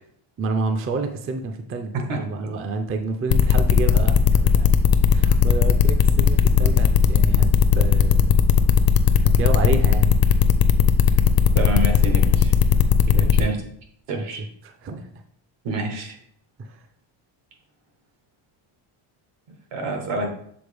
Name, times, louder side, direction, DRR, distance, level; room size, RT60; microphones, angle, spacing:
voice 1, 0.4-4.7 5.1-8.4 9.2-10.1 13.1-13.6 14.1-14.3 14.6-15.1 16.6-16.8, right 3 dB, 30° right, 6 dB, 0.4 m, -29 dB
sound 1, 3.3-13.4, left 8 dB, 50° left, 0.5 m, -16 dB
voice 2, 11.5-12.5 13.1-13.6 14.1-14.4 15.6-16.2 19.7-20.3, right 2 dB, 80° right, 3 dB, 1.5 m, -28 dB
7.0 x 4.0 x 3.3 m, 0.65 s
cardioid pair, 140°, 50 cm